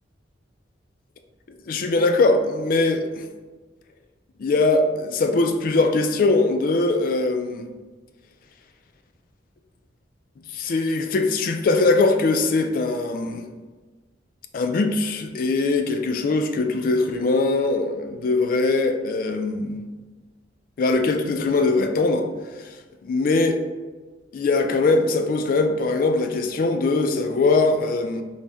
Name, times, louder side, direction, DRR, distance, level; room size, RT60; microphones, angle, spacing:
voice 1, 1.7-3.2 4.4-7.7 10.5-13.5 14.5-19.8 20.8-22.3 23.0-23.6 24.3-28.2, left 3 dB, 50° left, 6 dB, 0.3 m, -21 dB
3.9 x 2.1 x 3.4 m, 1.3 s
head